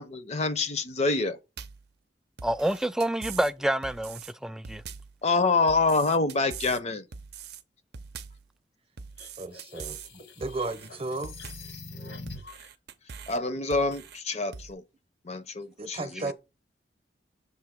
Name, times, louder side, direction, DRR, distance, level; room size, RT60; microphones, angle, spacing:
voice 1, 0.0-1.4 5.2-7.0 13.3-14.8 15.2-16.3, left 3 dB, 40° left, 0.7 m, -26 dB
sound 1, 1.6-1.9 2.4-3.5 3.8-4.3 4.6-5.2 5.7-6.8 7.1-7.6 7.9-8.5 9.0-10.1 10.4-10.9 11.2-11.7 12.3-13.4 13.7-14.2 14.5-14.7, right 6 dB, 60° right, 0.6 m, -43 dB
voice 2, 2.4-4.8, right 1 dB, 5° right, 0.3 m, -28 dB
sound 2, 9.2-12.7, left 3 dB, 75° left, 1.3 m, -44 dB
voice 3, 9.4-11.4 15.8-16.3, right 2 dB, 35° right, 0.8 m, -34 dB
6.9 x 2.8 x 5.8 m
head